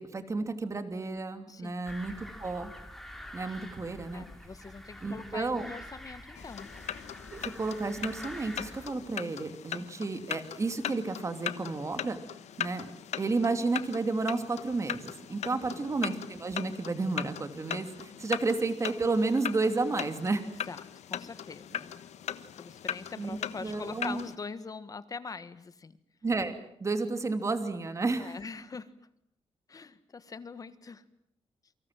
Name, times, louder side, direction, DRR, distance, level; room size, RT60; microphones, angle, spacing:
voice 1, 0.0-2.7 3.3-4.3 5.0-5.7 7.3-12.2 12.6-12.9 13.2-20.5 23.2-23.3 23.6-24.2 26.2-26.5 26.8-28.4, right 3 dB, 25° right, 8 dB, 2.8 m, -31 dB
sound 1, 1.8-8.9, left 1 dB, 5° left, 3.4 m, -46 dB
voice 2, 4.1-6.7 15.5-15.9 20.5-22.0 22.6-26.0 28.2-28.9 29.7-31.0, left 4 dB, 30° left, 13 dB, 1.6 m, -43 dB
sound 2, 6.3-24.4, left 10 dB, 90° left, 1.2 m, -40 dB
28.5 x 25.0 x 7.7 m, 0.70 s
wide cardioid pair, 140°, 11 cm